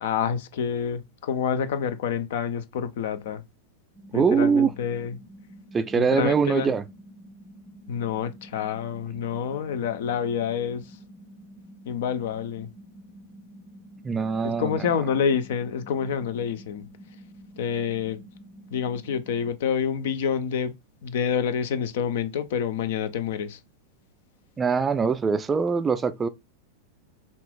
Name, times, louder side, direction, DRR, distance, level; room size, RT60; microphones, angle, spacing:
voice 1, 0.0-3.4 4.1-5.2 5.9-6.7 7.9-11.0 11.9-12.7 14.4-16.8 17.6-18.2 18.7-20.7 21.0-23.6, left 7 dB, 55° left, 0.6 m, -28 dB
sound 1, 3.9-19.5, right 1 dB, 10° left, 1.0 m, -48 dB
voice 2, 4.1-4.7 5.7-6.8 14.0-14.9 24.6-26.3, right 5 dB, 20° right, 0.4 m, -23 dB
5.6 x 2.5 x 3.7 m
figure-of-eight pair, 90°, 0 cm